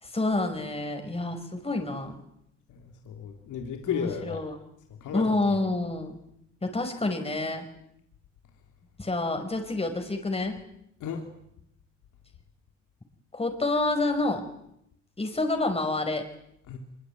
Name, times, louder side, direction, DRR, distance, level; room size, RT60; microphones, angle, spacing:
voice 1, 0.0-2.2 3.9-4.5 5.1-6.2 6.6-7.7 9.0-10.6 13.3-14.4 15.2-16.3, left 2 dB, 20° left, 5 dB, 5.2 m, -28 dB
voice 2, 2.7-4.4 5.0-5.6 11.0-11.3 16.7-16.8, left 7 dB, 80° left, 3 dB, 3.5 m, -34 dB
25.0 x 23.0 x 9.4 m, 0.77 s
cardioid pair, 90°, 30 cm